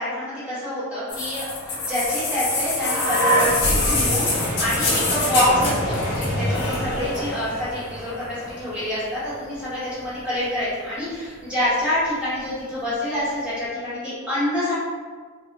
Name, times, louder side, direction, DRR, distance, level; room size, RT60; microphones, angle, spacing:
voice 1, 0.0-14.7, left 1 dB, 5° right, -11 dB, 1.3 m, -26 dB
sound 1, 1.1-9.0 10.0-10.1, left 1 dB, 55° left, 1.0 m, -24 dB
4.0 x 2.3 x 2.9 m, 1.5 s
head